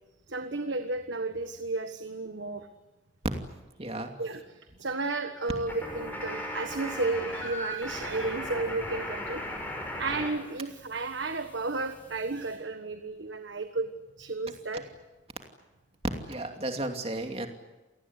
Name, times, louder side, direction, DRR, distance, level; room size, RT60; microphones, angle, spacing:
voice 1, 0.3-2.7 4.2-9.5 10.0-13.9 14.2-14.9, right 3 dB, 75° right, 8 dB, 1.4 m, -33 dB
voice 2, 3.8-4.1 16.3-17.5, right 1 dB, 30° right, 5 dB, 2.7 m, -34 dB
sound 1, 5.7-10.3 10.6-12.5, left 1 dB, 10° left, 5.9 m, -38 dB
28.5 x 18.5 x 9.9 m, 1.1 s
head